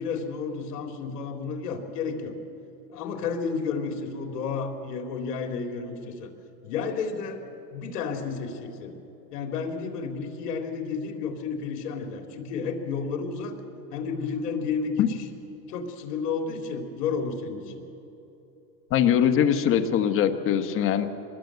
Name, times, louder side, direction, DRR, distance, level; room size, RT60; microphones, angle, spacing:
voice 1, 0.0-2.4 2.9-6.3 6.6-7.4 7.7-8.9 9.3-13.6 13.9-15.2 15.7-17.8, left 5 dB, 70° left, 3 dB, 3.9 m, -31 dB
voice 2, 18.9-21.1, left 9 dB, 25° left, 7 dB, 1.2 m, -22 dB
25.0 x 20.5 x 8.0 m, 2.9 s
supercardioid pair, 155°, 50 cm